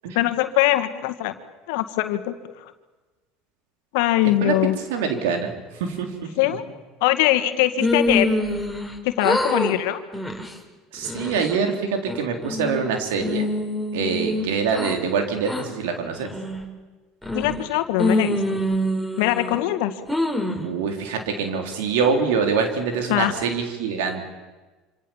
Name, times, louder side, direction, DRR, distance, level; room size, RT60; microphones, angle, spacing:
voice 1, 0.1-1.3 1.7-2.3 3.9-4.8 6.4-6.6 7.0-8.3 9.0-10.0 17.3-18.6 19.2-19.9 23.1-23.3, left 15 dB, 75° left, 9 dB, 1.9 m, -21 dB
voice 2, 4.9-5.5 5.8-6.1 6.5-6.6 10.9-13.5 13.9-16.3 20.6-24.3, right 5 dB, 80° right, 4 dB, 4.0 m, -24 dB
sound 1, 7.8-8.9 9.2-9.7 10.1-10.5 11.0-11.6 12.1-12.8 13.2-14.9 15.5-15.6 16.2-16.6 17.2-17.7 18.0-19.6 20.1-20.7, left 1 dB, 5° right, 5.0 m, -25 dB
27.0 x 26.0 x 7.4 m, 1.3 s
hypercardioid pair, 85°, 0 cm